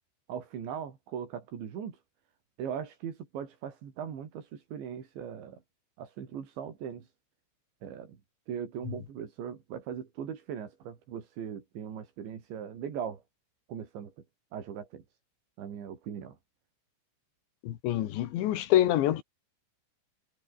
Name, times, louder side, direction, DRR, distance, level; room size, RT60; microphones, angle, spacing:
voice 1, 0.3-2.0 2.6-5.6 6.0-7.1 7.8-8.2 8.5-13.2 13.7-14.1 14.5-15.0 15.6-16.4, right 8 dB, 75° right, 5.9 m, -39 dB
voice 2, 17.6-19.2, left 13 dB, 75° left, 4.0 m, -26 dB
omnidirectional pair, 5.3 m